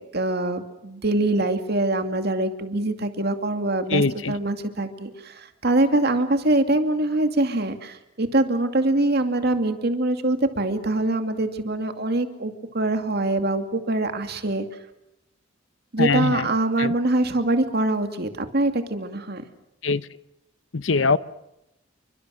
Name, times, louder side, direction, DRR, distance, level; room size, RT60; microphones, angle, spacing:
voice 1, 0.0-4.0 4.3-14.7 15.9-19.4, right 2 dB, 55° right, 7 dB, 2.4 m, -24 dB
voice 2, 3.9-4.3 16.0-16.5 16.8-17.0 19.8-20.0 20.7-21.2, left 4 dB, 85° left, 16 dB, 0.9 m, -22 dB
29.0 x 24.0 x 6.4 m, 0.87 s
head